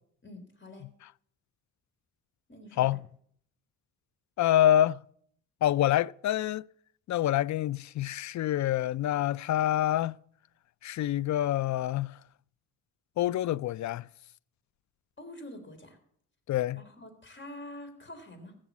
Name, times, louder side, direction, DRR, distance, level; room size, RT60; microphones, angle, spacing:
voice 1, 0.2-0.9 2.5-3.0 15.2-16.0 16.7-18.6, left 1 dB, 30° left, 3.7 m, -46 dB
voice 2, 4.4-5.0 5.6-6.7 7.1-10.1 10.8-12.2 13.2-14.1 16.5-16.8, left 12 dB, 50° left, 0.4 m, -26 dB
15.0 x 6.8 x 8.3 m
supercardioid pair, 60°, 36 cm